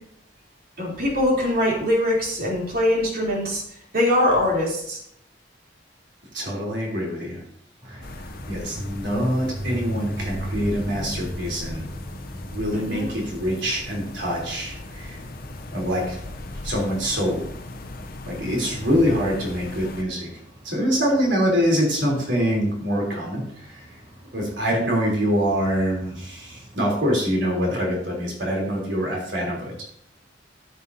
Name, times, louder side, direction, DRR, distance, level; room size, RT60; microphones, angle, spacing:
voice 1, 0.8-3.6 3.9-5.0 12.7-13.1 15.7-15.8 18.2-18.5, left 1 dB, 55° right, -3 dB, 3.5 m, -23 dB
voice 2, 6.3-7.4 7.9-8.0 8.5-11.9 12.5-15.2 15.7-16.2 16.6-17.5 18.3-20.3 20.6-23.9 24.3-29.7, equal, 85° right, -2 dB, 3.6 m, -25 dB
sound 1, 7.8-27.2, right 1 dB, 35° right, 4.3 m, -40 dB
sound 2, 8.0-20.0, left 2 dB, 55° left, 0.8 m, -38 dB
13.0 x 8.3 x 2.8 m, 0.68 s
head